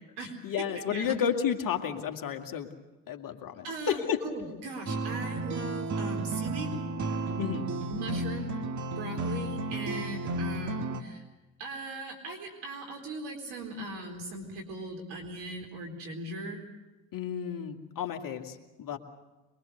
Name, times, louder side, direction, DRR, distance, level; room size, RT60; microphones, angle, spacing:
voice 1, 0.4-2.7 3.1-4.2 7.4-7.7 17.1-19.0, left 8 dB, 50° left, 4 dB, 2.4 m, -32 dB
voice 2, 3.6-6.7 7.9-11.2 11.6-16.6, right 2 dB, 65° right, 3 dB, 4.0 m, -39 dB
sound 1, 4.9-11.0, right 2 dB, 40° right, 1.9 m, -33 dB
23.0 x 23.0 x 6.8 m, 1.1 s
hypercardioid pair, 60°, 43 cm